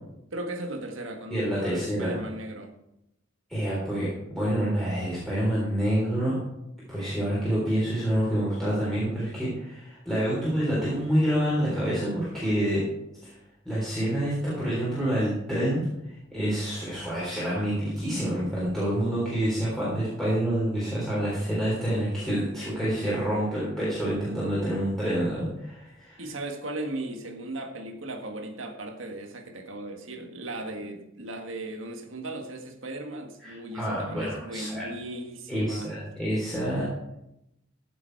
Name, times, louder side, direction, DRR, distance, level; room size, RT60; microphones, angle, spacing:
voice 1, 0.3-2.7 26.2-35.9, right 1 dB, 85° right, 4 dB, 1.8 m, -37 dB
voice 2, 1.3-2.2 3.5-6.4 6.9-12.8 13.7-15.8 16.1-26.2 33.4-34.9 35.5-36.9, equal, ahead, -9 dB, 3.7 m, -27 dB
15.0 x 7.2 x 4.7 m, 0.85 s
head